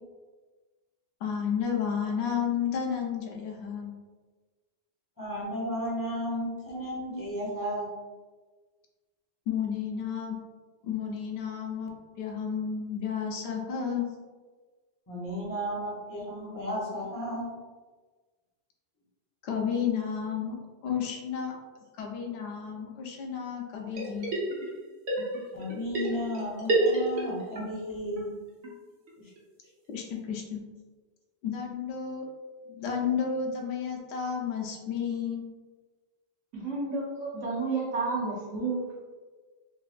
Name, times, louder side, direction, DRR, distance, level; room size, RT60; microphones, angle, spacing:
voice 1, 1.2-3.9 9.5-10.4 10.8-14.1 19.4-20.6 20.8-21.5 21.9-24.3 29.9-30.6 31.4-32.3 32.7-35.5, left 7 dB, 65° left, 1 dB, 0.8 m, -32 dB
voice 2, 5.2-7.9 15.1-17.5 25.5-28.4, equal, 20° left, -6 dB, 0.8 m, -34 dB
sound 1, 23.9-24.8 25.1-27.6 27.9-28.0 28.2-28.3 28.6-28.7 29.1-29.2 29.4-29.5 29.9-30.0, right 2 dB, 70° right, 1.0 m, -29 dB
voice 3, 36.5-38.9, right 3 dB, 90° right, -3 dB, 1.2 m, -31 dB
3.2 x 2.7 x 2.4 m, 1.4 s
omnidirectional pair, 1.2 m